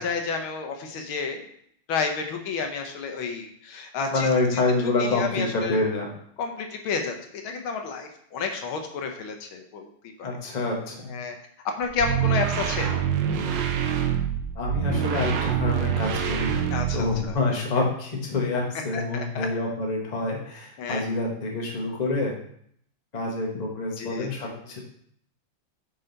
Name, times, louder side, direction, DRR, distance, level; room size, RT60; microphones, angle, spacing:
voice 1, 0.0-1.4 1.9-4.6 5.0-5.8 6.4-7.2 7.4-10.3 11.1-11.4 11.8-12.9 16.7-17.4 18.9-19.5 20.8-21.0 24.0-24.6, left 5 dB, 85° left, 4 dB, 1.8 m, -31 dB
voice 2, 4.1-6.1 10.2-11.2 14.6-16.5 16.9-22.3 23.1-24.8, left 2 dB, 25° left, -1 dB, 1.1 m, -27 dB
sound 1, 11.8-17.3, right 9 dB, 70° right, 1.3 m, -26 dB
8.7 x 3.9 x 3.9 m, 0.66 s
omnidirectional pair, 2.2 m